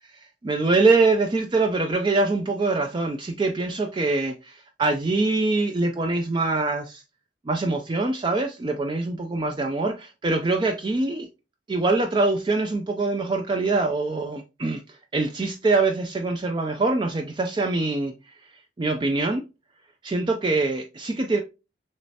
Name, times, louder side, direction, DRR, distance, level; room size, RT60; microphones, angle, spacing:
voice 1, 0.4-7.0 7.5-11.3 11.7-14.8 15.1-18.1 18.8-19.4 20.0-21.4, right 3 dB, 25° right, 0.3 m, -24 dB
6.3 x 3.1 x 2.7 m
head